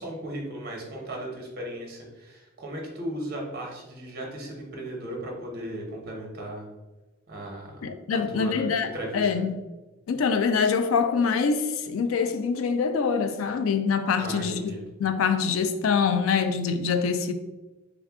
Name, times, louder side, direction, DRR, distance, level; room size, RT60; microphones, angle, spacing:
voice 1, 0.0-6.7 7.3-9.4 14.2-14.9, right 1 dB, 50° right, 0.9 m, -36 dB
voice 2, 7.8-9.6 10.1-14.7 15.0-17.3, left 5 dB, 80° left, 0.4 m, -25 dB
3.5 x 2.4 x 3.5 m
head